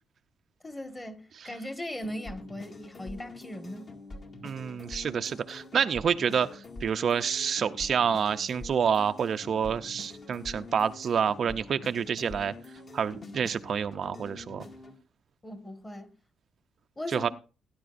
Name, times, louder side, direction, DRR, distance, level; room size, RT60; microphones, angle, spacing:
voice 1, 0.6-3.9 15.4-16.1 17.0-17.3, left 1 dB, 15° left, 1.5 m, -39 dB
sound 1, 2.0-14.9, left 2 dB, 40° left, 1.9 m, -45 dB
voice 2, 4.4-12.5 12.9-14.7 17.1-17.3, right 7 dB, 45° right, 0.5 m, -28 dB
18.5 x 10.0 x 2.5 m
cardioid pair, 140°, 0 cm